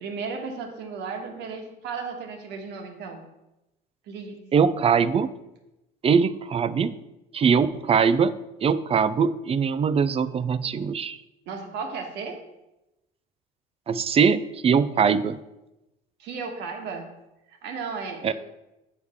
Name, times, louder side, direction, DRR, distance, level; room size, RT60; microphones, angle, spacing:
voice 1, 0.0-3.2 4.1-4.4 11.5-12.4 16.2-17.1 17.5-18.3, right 5 dB, 70° right, 3 dB, 1.4 m, -34 dB
voice 2, 4.5-5.3 6.0-6.9 7.3-8.3 8.6-11.2 13.9-15.4 18.2-18.3, right 6 dB, 30° right, 15 dB, 0.4 m, -22 dB
8.0 x 4.8 x 3.6 m, 0.94 s
supercardioid pair, 80°, 19 cm